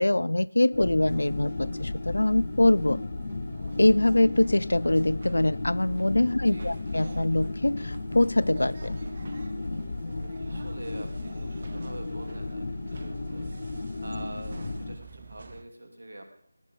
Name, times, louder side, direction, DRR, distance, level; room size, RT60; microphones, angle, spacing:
voice 1, 0.0-3.0 3.8-9.0, left 1 dB, 70° left, 22 dB, 0.4 m, -23 dB
sound 1, 0.7-15.0, left 2 dB, 40° left, 1.0 m, -34 dB
sound 2, 1.1-15.6, right 4 dB, 35° right, 0.8 m, -48 dB
voice 2, 6.3-6.8 10.4-16.3, right 1 dB, 55° right, 5 dB, 2.6 m, -45 dB
17.5 x 10.5 x 3.9 m, 0.63 s
figure-of-eight pair, 165°, 0 cm